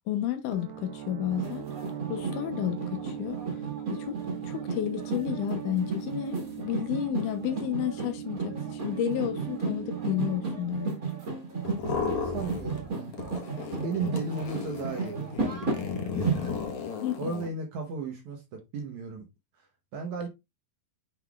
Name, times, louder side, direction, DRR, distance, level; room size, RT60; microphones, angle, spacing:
voice 1, 0.1-1.7 2.1-3.4 3.9-4.2 4.4-11.0 16.2-16.6 17.0-17.3, left 11 dB, 75° left, 1.9 m, -31 dB
sound 1, 0.5-12.0, right 10 dB, 90° right, 2.9 m, -40 dB
sound 2, 1.3-16.4, right 4 dB, 30° right, 1.8 m, -34 dB
sound 3, 11.6-12.9 13.1-17.5, left 5 dB, 60° left, 2.2 m, -35 dB
voice 2, 12.2-13.1 13.4-16.6 17.2-19.3 19.6-19.7 19.9-20.3, right 4 dB, 70° right, 1.8 m, -36 dB
7.9 x 5.3 x 2.4 m
omnidirectional pair, 4.6 m